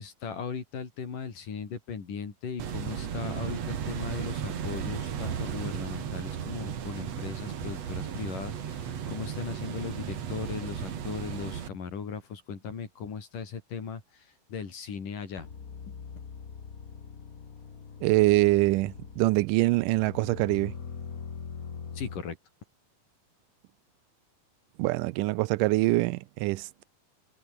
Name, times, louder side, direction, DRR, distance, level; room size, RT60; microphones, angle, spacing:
voice 1, 0.0-15.5 22.0-22.4, left 6 dB, 75° left, 5.5 m, -38 dB
sound 1, 2.6-11.7, right 8 dB, 55° right, 2.9 m, -35 dB
sound 2, 15.4-19.5 20.0-22.2, left 6 dB, 40° left, 1.4 m, -42 dB
voice 2, 18.0-20.8 24.8-26.8, right 20 dB, 85° right, 2.1 m, -24 dB
omnidirectional pair, 3.8 m